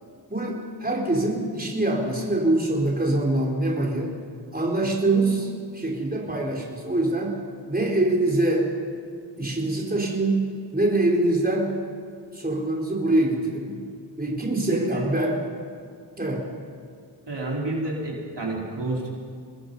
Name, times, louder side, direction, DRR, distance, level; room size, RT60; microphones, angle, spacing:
voice 1, 0.3-4.2 4.5-7.4 7.7-8.7 9.4-10.5 10.7-11.8 12.3-13.8 14.2-15.4 16.2-16.5, right 2 dB, 20° right, -2 dB, 4.2 m, -24 dB
voice 2, 14.7-15.1 17.3-19.2, right 2 dB, 75° right, -3 dB, 4.3 m, -29 dB
24.0 x 20.0 x 5.5 m, 2.2 s
wide cardioid pair, 45°, 42 cm